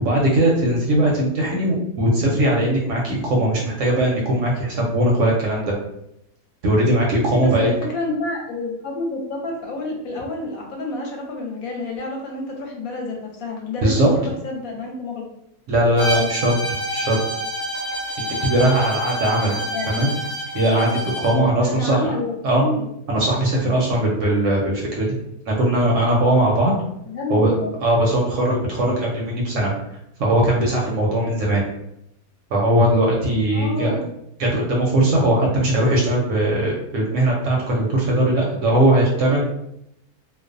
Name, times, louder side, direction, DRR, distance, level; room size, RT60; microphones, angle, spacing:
voice 1, 0.0-5.7 6.6-7.7 13.8-14.1 15.7-17.2 18.4-19.5 19.9-20.1 20.5-22.1 22.4-22.7 23.1-25.1 25.5-26.7 27.3-29.7 30.2-31.6 32.5-34.0 34.4-39.5, right 1 dB, 65° right, -2 dB, 0.8 m, -19 dB
voice 2, 7.3-15.3 19.4-20.1 21.6-22.9 27.1-27.7 33.5-34.1, left 2 dB, 75° left, 1 dB, 1.0 m, -29 dB
Bowed string instrument, 16.0-21.4, equal, 40° left, 1.0 m, -28 dB
2.5 x 2.1 x 2.5 m, 0.79 s
omnidirectional pair, 1.6 m